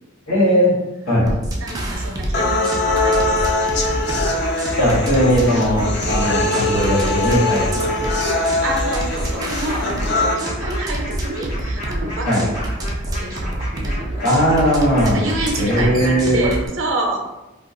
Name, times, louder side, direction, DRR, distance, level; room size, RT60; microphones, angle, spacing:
voice 1, 0.3-0.7 1.1-1.3 4.8-8.1 12.2-12.4 14.2-15.2 15.6-16.5, equal, 80° left, -8 dB, 1.5 m, -18 dB
voice 2, 1.2-4.3 8.6-12.5 13.2-14.7 15.0-17.2, right 2 dB, 70° right, 1 dB, 0.6 m, -28 dB
sound 1, 1.3-16.7, right 1 dB, 20° right, 0.3 m, -27 dB
sound 2, 2.3-10.3, left 2 dB, 55° left, 0.4 m, -22 dB
sound 3, 4.2-15.9, left 1 dB, 35° left, 1.2 m, -34 dB
2.5 x 2.2 x 3.7 m, 1.0 s
head